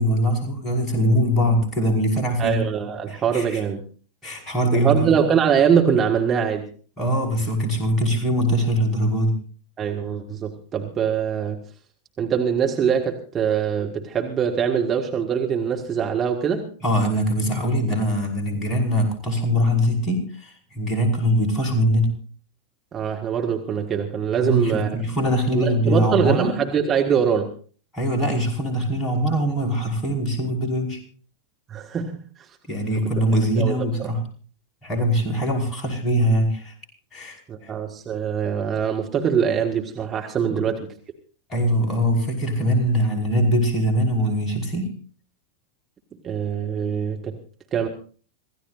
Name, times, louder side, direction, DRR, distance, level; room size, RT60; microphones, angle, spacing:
voice 1, 0.0-2.6 3.1-3.6 4.2-5.2 7.0-9.4 16.8-22.2 24.4-26.5 27.9-31.0 32.7-34.3 34.8-36.7 37.1-37.7 40.5-40.6 41.5-44.9, equal, 20° left, 2 dB, 5.4 m, -22 dB
voice 2, 2.4-3.8 4.7-6.7 9.8-11.6 12.2-16.7 22.9-25.1 25.5-27.5 31.7-32.2 33.6-34.1 37.5-40.9 46.2-47.4 47.7-47.9, right 7 dB, 25° right, 2 dB, 1.8 m, -23 dB
26.5 x 15.5 x 2.6 m, 0.41 s
figure-of-eight pair, 90°, 0 cm